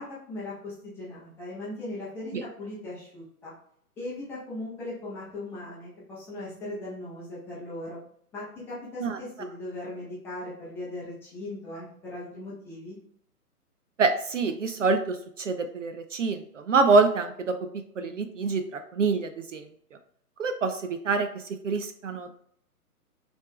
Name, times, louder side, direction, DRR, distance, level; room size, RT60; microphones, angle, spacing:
voice 1, 0.0-3.5 4.0-8.0 8.3-13.0, left 2 dB, 5° left, -9 dB, 0.6 m, -38 dB
voice 2, 14.0-17.5 18.0-19.7 20.4-22.3, right 4 dB, 55° right, 7 dB, 0.5 m, -26 dB
3.9 x 3.4 x 3.1 m, 0.66 s
figure-of-eight pair, 130°, 46 cm